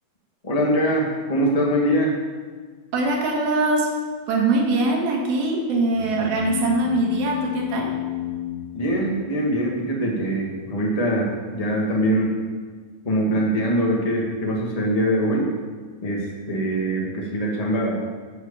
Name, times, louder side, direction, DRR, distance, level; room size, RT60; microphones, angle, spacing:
voice 1, 0.4-2.1 8.7-12.4 13.0-15.5 16.0-18.0, right 1 dB, 15° left, -3 dB, 1.2 m, -23 dB
voice 2, 2.9-3.9 4.3-7.9, right 2 dB, 85° right, 0 dB, 3.7 m, -22 dB
sound 1, 5.9-9.6, left 11 dB, 45° left, 1.2 m, -30 dB
13.0 x 6.5 x 7.1 m, 1.5 s
omnidirectional pair, 4.2 m